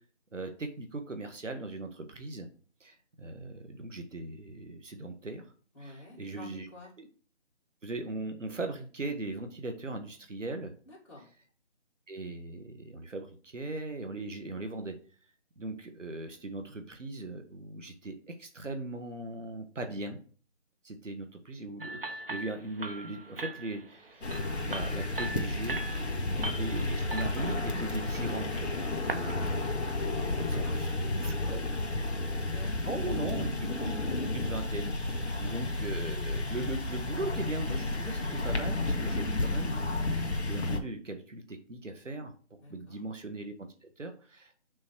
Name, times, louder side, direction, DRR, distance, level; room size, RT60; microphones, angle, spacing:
voice 1, 0.3-2.5 2.8-5.4 5.8-6.7 7.0-7.1 7.8-10.7 12.1-15.0 15.6-20.2 20.8-24.3 24.6-25.8 26.5-28.7 29.1-29.3 30.1-30.9 31.2-31.6 32.8-33.9 34.2-43.5 43.8-44.5, right 2 dB, 85° right, 6 dB, 1.6 m, -39 dB
voice 2, 5.7-6.9 10.8-11.3 26.0-26.3 29.0-29.2 30.2-33.5 35.2-35.6 42.6-43.0, left 1 dB, 25° left, -6 dB, 2.2 m, -50 dB
sound 1, 21.8-29.3, right 2 dB, 50° right, 1.0 m, -41 dB
sound 2, 24.2-40.8, left 2 dB, 65° left, 1.7 m, -32 dB
6.3 x 3.8 x 4.7 m, 0.41 s
figure-of-eight pair, 170°, 36 cm